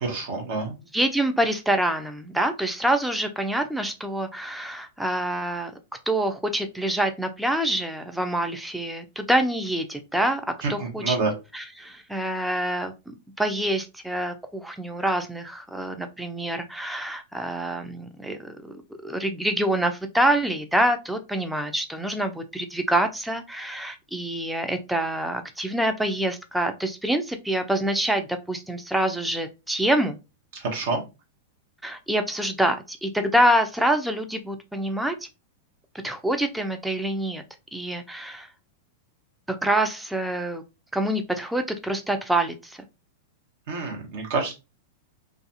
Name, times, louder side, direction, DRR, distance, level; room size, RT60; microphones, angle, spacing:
voice 1, 0.0-0.7 10.6-10.7 11.0-11.3 30.5-31.0 43.7-44.5, right 3 dB, 55° right, 1 dB, 0.8 m, -27 dB
voice 2, 0.9-5.7 6.1-11.2 11.5-18.8 19.0-30.2 31.8-35.1 36.0-37.4 37.7-38.5 39.5-40.6 40.9-42.8, right 1 dB, 5° right, 6 dB, 0.4 m, -26 dB
2.4 x 2.3 x 2.6 m, 0.27 s
figure-of-eight pair, 95°, 0 cm